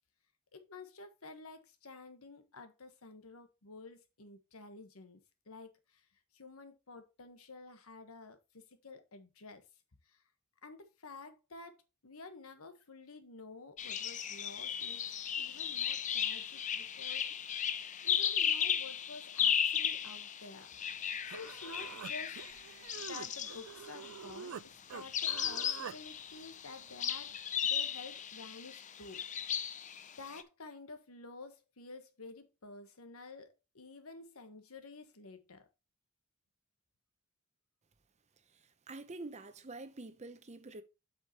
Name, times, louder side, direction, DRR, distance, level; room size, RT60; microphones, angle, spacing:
voice 1, 0.5-5.2 5.5-6.1 6.3-9.6 10.1-10.2 10.6-15.1 15.4-17.3 18.0-21.0 21.3-22.4 23.1-27.4 27.7-29.2 29.5-29.6 30.2-35.6, left 3 dB, 85° left, 1.3 m, -51 dB
sound 1, 13.8-24.4 25.0-30.4, left 8 dB, 35° left, 0.6 m, -36 dB
Human voice, 20.9-21.0 21.3-24.6 24.9-26.0, right 8 dB, 75° right, 0.4 m, -46 dB
voice 2, 38.9-40.8, right 2 dB, 30° right, 0.8 m, -46 dB
8.1 x 6.4 x 3.0 m
head